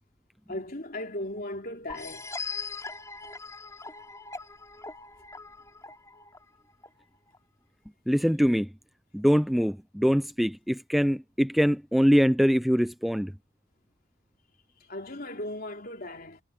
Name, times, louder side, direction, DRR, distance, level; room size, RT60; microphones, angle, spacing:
voice 1, 0.5-2.3 14.9-16.4, left 1 dB, 45° left, 4.0 m, -37 dB
sound 1, 1.9-7.4, left 4 dB, 15° left, 5.3 m, -40 dB
voice 2, 8.1-8.7 9.1-13.3, equal, ahead, 0.3 m, -23 dB
head